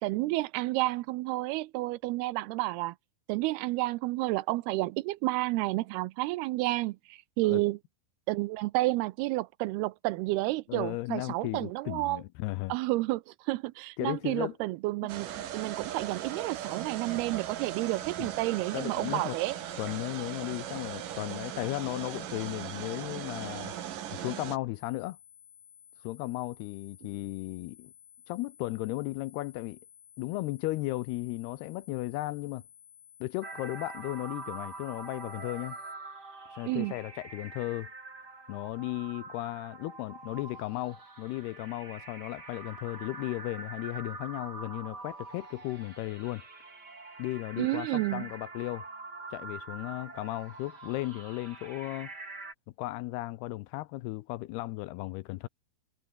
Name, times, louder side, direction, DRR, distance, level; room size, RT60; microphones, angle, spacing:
voice 1, 0.0-3.0 3.3-7.8 8.3-12.2 12.7-19.6 36.6-36.9 47.6-48.3, right 19 dB, 80° right, 2.4 m, -30 dB
voice 2, 10.7-12.7 14.0-14.6 18.2-18.3 18.7-19.4 19.8-23.7 24.1-25.2 26.0-27.9 28.3-29.8 30.2-32.6 33.2-35.8 36.5-37.9 38.5-46.4 47.2-48.9 49.3-52.1 52.8-55.5, left 18 dB, 80° left, 2.5 m, -35 dB
sound 1, 15.1-24.6, right 10 dB, 55° right, 3.1 m, -39 dB
sound 2, 24.7-35.9, left 9 dB, 50° left, 2.1 m, -56 dB
sound 3, 33.4-52.5, right 3 dB, 25° right, 4.4 m, -45 dB
omnidirectional pair, 4.9 m